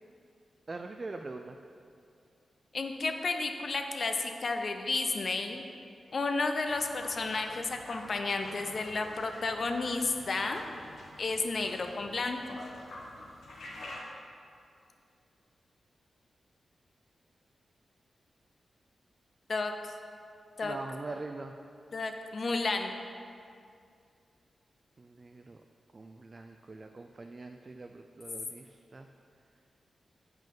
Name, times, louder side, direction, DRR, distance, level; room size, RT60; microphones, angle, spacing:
voice 1, 0.7-1.6 20.6-21.6 25.0-25.6 25.9-29.1, right 3 dB, 40° right, 5 dB, 0.3 m, -43 dB
voice 2, 2.7-5.6 6.1-10.6 11.2-12.6 19.5-19.7 20.6-20.8 21.9-22.9, left 3 dB, 55° left, 5 dB, 0.6 m, -32 dB
sound 1, 6.7-14.0, left 1 dB, 85° left, 1.0 m, -48 dB
7.4 x 5.2 x 3.8 m, 2.4 s
cardioid pair, 70°, 0 cm